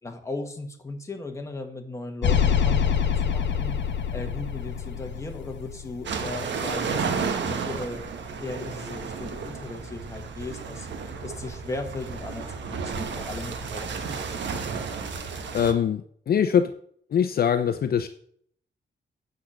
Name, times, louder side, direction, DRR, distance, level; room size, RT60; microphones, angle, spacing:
voice 1, 0.0-3.8 4.1-10.9 11.2-14.0, left 2 dB, 15° left, 3 dB, 1.5 m, -37 dB
sound 1, 2.2-6.5, left 8 dB, 70° left, 1.2 m, -25 dB
sound 2, 6.0-15.7, right 5 dB, 75° right, 1.2 m, -32 dB
voice 2, 15.5-16.7 17.1-18.1, left 8 dB, 55° left, 9 dB, 0.6 m, -23 dB
8.4 x 6.5 x 7.4 m, 0.63 s
wide cardioid pair, 170°, 19 cm